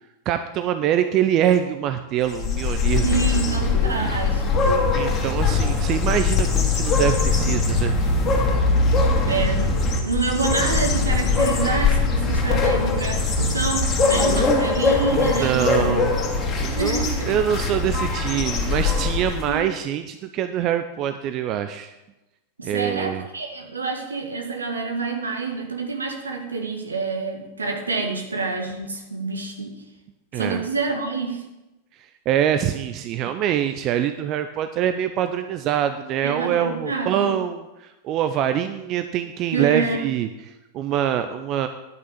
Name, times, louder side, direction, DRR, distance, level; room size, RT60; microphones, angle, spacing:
voice 1, 0.3-3.0 4.9-8.1 14.1-14.4 15.1-16.2 16.6-21.9 22.6-23.2 30.3-30.6 32.0-41.7, right 10 dB, 35° right, 9 dB, 0.6 m, -24 dB
sound 1, 2.2-19.5, left 3 dB, 25° left, 2.3 m, -21 dB
voice 2, 3.0-4.8 9.2-9.7 10.0-16.0 16.7-17.4 19.5-19.7 22.6-29.7 30.3-31.4 36.2-37.3 39.5-40.0, right 4 dB, 75° right, 2 dB, 1.8 m, -27 dB
10.5 x 6.2 x 6.9 m, 0.99 s
figure-of-eight pair, 90°, 0 cm